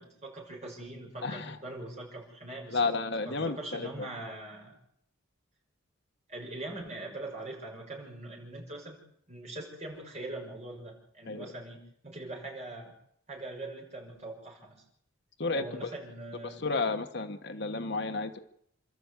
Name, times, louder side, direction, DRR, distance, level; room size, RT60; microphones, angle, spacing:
voice 1, 0.0-3.0 3.3-4.8 6.3-12.9 13.3-14.8 15.5-16.7, right 2 dB, 30° right, 0 dB, 6.3 m, -42 dB
voice 2, 1.2-1.6 2.7-4.1 11.3-11.5 15.4-15.6 16.6-18.4, left 3 dB, 55° left, 7 dB, 1.2 m, -32 dB
28.5 x 13.0 x 8.2 m, 0.71 s
head